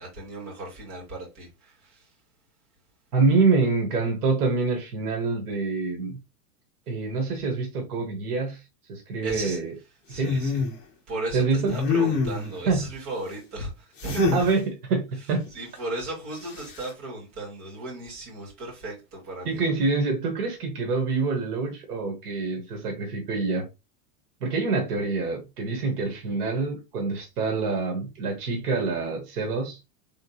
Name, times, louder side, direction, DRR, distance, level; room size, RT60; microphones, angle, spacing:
voice 1, 0.0-2.1 9.2-9.6 10.1-10.6 11.1-14.4 15.5-19.6, right 2 dB, 40° right, 2.5 m, -36 dB
voice 2, 3.1-6.2 6.9-8.6 8.9-9.7 10.1-10.4 11.3-11.7 12.7-12.9 14.3-15.4 19.4-23.7 24.4-29.8, right 4 dB, 85° right, 1.6 m, -26 dB
sound 1, 10.2-10.8 11.6-12.6 14.0-14.5 16.5-16.9, left 3 dB, 25° left, 1.0 m, -25 dB
3.7 x 3.6 x 2.9 m
supercardioid pair, 160°, 44 cm